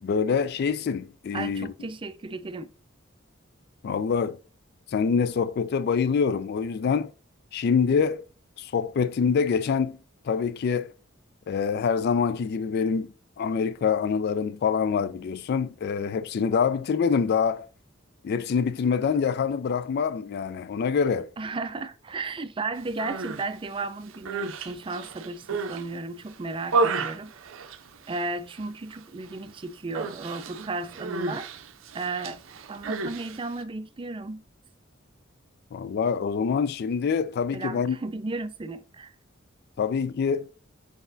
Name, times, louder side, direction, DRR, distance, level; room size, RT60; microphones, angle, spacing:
voice 1, 0.0-1.7 3.8-4.4 4.9-7.1 7.5-8.2 8.6-10.0 10.2-10.9 11.5-17.7 18.2-21.3 35.7-38.0 39.8-40.5, left 6 dB, 55° left, 0.3 m, -25 dB
voice 2, 1.3-2.7 21.4-27.3 28.1-31.5 31.9-32.4 32.7-34.4 37.5-39.1, right 3 dB, 25° right, 0.4 m, -34 dB
Human voice, 22.9-23.5 24.0-25.9 26.3-28.3 28.5-29.0 29.2-29.5 29.9-33.6, right 3 dB, 80° right, 0.5 m, -32 dB
4.8 x 4.1 x 2.6 m
head